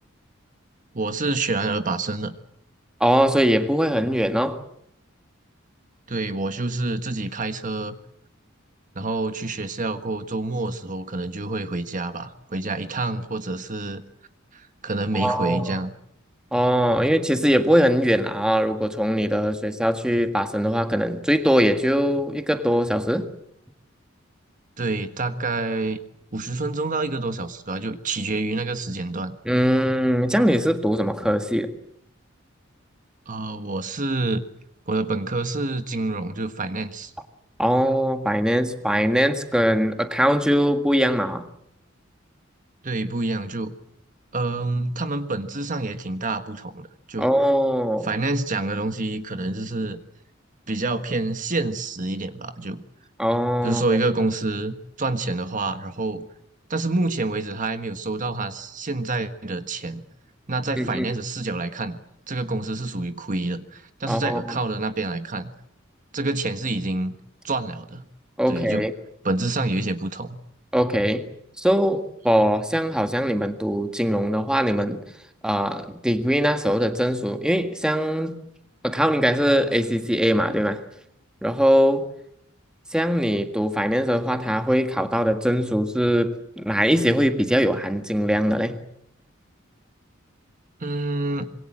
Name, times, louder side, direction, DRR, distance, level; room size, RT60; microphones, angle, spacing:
voice 1, 0.9-2.3 6.1-8.0 8.9-14.0 14.5-15.9 24.8-26.0 26.3-29.4 33.3-34.4 34.9-37.1 42.8-43.7 44.3-47.3 48.0-50.0 50.7-52.8 53.6-56.3 56.7-60.0 60.5-62.0 62.3-65.5 66.1-67.1 67.4-68.0 68.5-68.9 69.2-70.4 90.8-91.5, right 2 dB, 40° right, 9 dB, 1.5 m, -27 dB
voice 2, 3.0-4.6 15.1-15.7 16.5-23.3 29.5-31.7 37.6-41.4 47.2-48.1 53.2-53.8 60.8-61.1 64.1-64.4 68.4-68.9 70.7-71.2 71.6-75.0 75.4-78.4 78.8-80.8 81.4-82.1 82.9-88.8, equal, 5° right, 7 dB, 1.8 m, -21 dB
26.0 x 23.0 x 7.6 m, 0.73 s
head